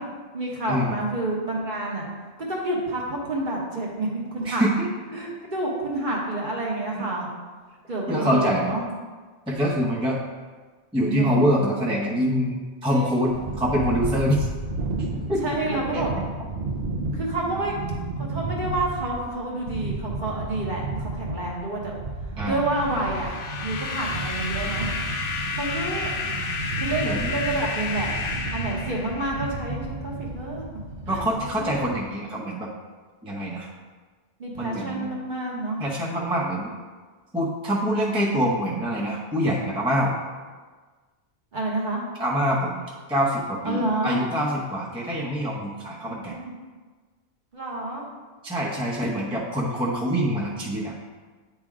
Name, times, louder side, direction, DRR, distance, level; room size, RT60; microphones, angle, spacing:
voice 1, 0.0-2.1 2.4-4.6 5.1-7.3 7.9-8.8 11.1-11.5 12.9-13.4 15.4-16.1 17.1-17.7 18.2-22.0 22.4-23.3 23.6-24.9 25.6-26.1 26.8-28.1 28.5-30.6 31.1-31.7 34.4-35.8 41.5-42.0 43.6-44.2 46.0-46.6 47.5-48.1, right 2 dB, 45° right, -3 dB, 1.2 m, -29 dB
voice 2, 4.4-4.9 6.9-7.1 8.1-8.7 9.5-10.2 10.9-14.5 15.3-15.4 15.7-16.0 22.4-22.6 27.0-27.3 31.1-32.7 33.2-33.7 34.6-35.1 35.8-36.7 37.3-40.1 42.2-42.8 43.1-46.3 48.4-50.9, equal, 5° right, -4 dB, 0.6 m, -25 dB
sound 1, 13.3-32.0, right 3 dB, 60° right, 0.9 m, -32 dB
sound 2, 22.6-29.6, left 4 dB, 90° left, 1.0 m, -31 dB
8.8 x 3.4 x 3.6 m, 1.4 s
omnidirectional pair, 1.2 m